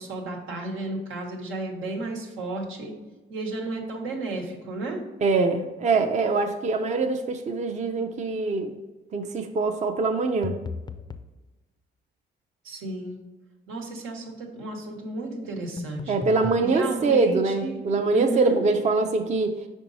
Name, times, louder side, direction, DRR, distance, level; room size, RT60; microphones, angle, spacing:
voice 1, 0.0-2.9 3.3-5.0 12.6-13.2 13.7-16.1 16.6-17.8 18.1-18.6, right 2 dB, 85° right, 1 dB, 1.3 m, -33 dB
voice 2, 5.2-8.7 9.1-10.6 16.1-19.5, right 3 dB, 35° right, 5 dB, 0.5 m, -23 dB
sound 1, 10.4-11.3 15.8-16.6, left 4 dB, 20° left, 0.4 m, -35 dB
5.3 x 4.5 x 4.0 m, 1.2 s
cardioid pair, 90°, 20 cm